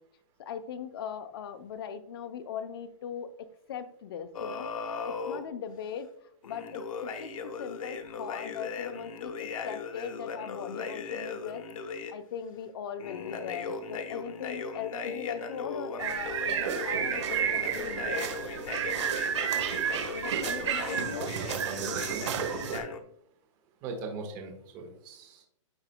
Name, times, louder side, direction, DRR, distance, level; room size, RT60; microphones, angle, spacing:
voice 1, 0.4-3.3 3.7-4.7 5.0-6.1 6.4-11.7 12.1-18.4 20.1-21.3, left 8 dB, 45° left, 9 dB, 0.7 m, -39 dB
sound 1, 4.3-5.4 6.4-12.1 13.0-23.0, left 5 dB, 80° left, 1.1 m, -38 dB
sound 2, 16.0-22.8, right 8 dB, 55° right, 1.4 m, -31 dB
voice 2, 21.0-22.2 23.8-25.4, right 4 dB, 20° right, 2 dB, 1.4 m, -40 dB
14.0 x 4.7 x 2.2 m, 0.70 s
hypercardioid pair, 170°, 17 cm